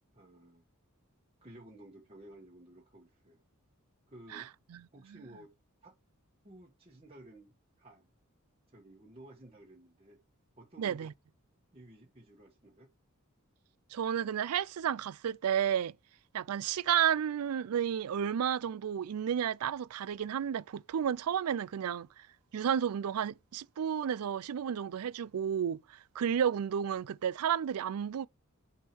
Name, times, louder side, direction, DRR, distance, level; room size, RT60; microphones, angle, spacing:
voice 1, 0.1-0.6 1.4-3.4 4.1-4.5 4.9-5.5 5.8-5.9 6.4-8.1 8.7-10.2 10.6-11.1 11.7-12.9, right 1 dB, 25° right, 1.2 m, -54 dB
voice 2, 10.8-11.1 13.9-15.9 16.3-22.3 22.5-28.3, right 8 dB, 85° right, 0.4 m, -32 dB
6.1 x 3.6 x 4.6 m
head